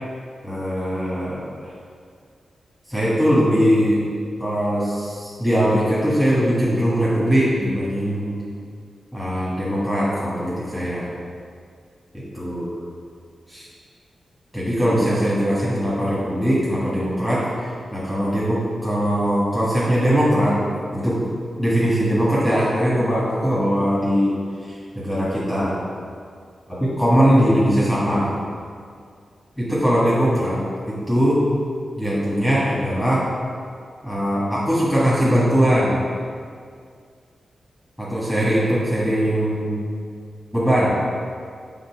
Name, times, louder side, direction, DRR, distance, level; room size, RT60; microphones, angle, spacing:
voice 1, 0.4-1.7 2.9-4.0 4.4-8.4 9.1-11.1 12.1-12.7 13.5-13.7 14.5-20.6 20.9-21.2 21.6-25.8 26.7-28.3 29.6-30.6 30.9-31.4 32.0-33.3 34.0-36.0 38.0-39.9 40.5-40.9, equal, ahead, -8 dB, 1.6 m, -20 dB
7.2 x 3.8 x 5.9 m, 2.2 s
wide cardioid pair, 115°, 0 cm